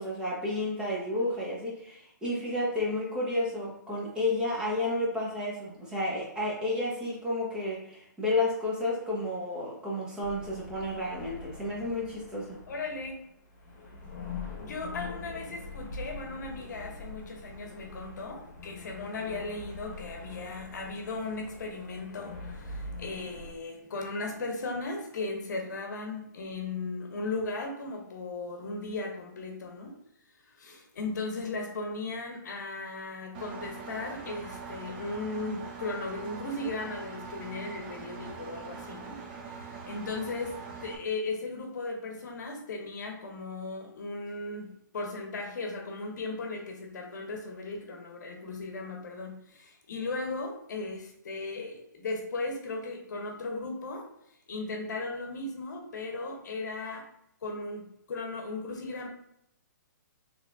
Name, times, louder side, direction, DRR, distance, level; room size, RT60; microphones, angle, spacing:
voice 1, 0.0-12.6, left 2 dB, 10° right, -5 dB, 1.0 m, -31 dB
sound 1, 10.2-23.5, left 3 dB, 35° left, 1.2 m, -43 dB
voice 2, 12.7-13.2 14.6-30.0 30.5-39.2 39.5-54.1 54.5-57.1 57.4-59.1, left 3 dB, 65° left, 3 dB, 0.9 m, -37 dB
Engine, 33.3-41.0, right 5 dB, 35° right, 0.6 m, -43 dB
4.3 x 3.1 x 2.5 m, 0.75 s
hypercardioid pair, 140°, 10 cm